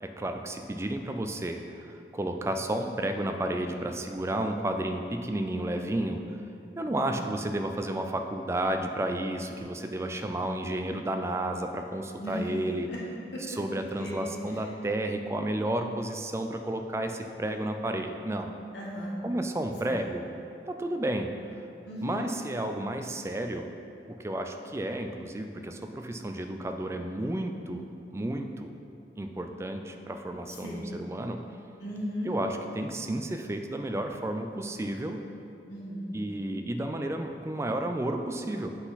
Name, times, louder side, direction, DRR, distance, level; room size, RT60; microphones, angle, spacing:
voice 1, 0.0-6.2 6.8-12.9 13.5-18.5 19.2-20.3 20.7-21.3 22.0-23.7 24.1-27.9 28.1-28.7 29.2-31.4 32.2-35.2 36.1-38.7, right 1 dB, 15° right, 5 dB, 0.3 m, -32 dB
voice 2, 6.9-7.3 12.2-12.4 12.9-13.0 14.0-14.2 18.7-19.2 19.9-20.0 21.9-22.3 30.6-30.8 31.8-32.3 35.7-36.1, equal, 85° left, -5 dB, 1.3 m, -37 dB
8.2 x 3.9 x 4.0 m, 2.7 s
head